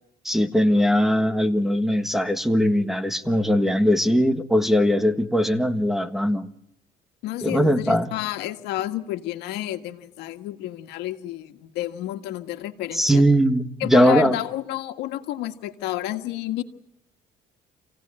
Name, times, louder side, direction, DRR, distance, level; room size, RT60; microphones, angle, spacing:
voice 1, 0.2-6.5 7.4-8.1 12.9-14.4, equal, ahead, 10 dB, 1.6 m, -20 dB
voice 2, 7.2-13.2 13.8-16.6, left 14 dB, 90° left, 8 dB, 1.7 m, -30 dB
28.0 x 17.0 x 9.9 m, 0.79 s
cardioid pair, 110°, 17 cm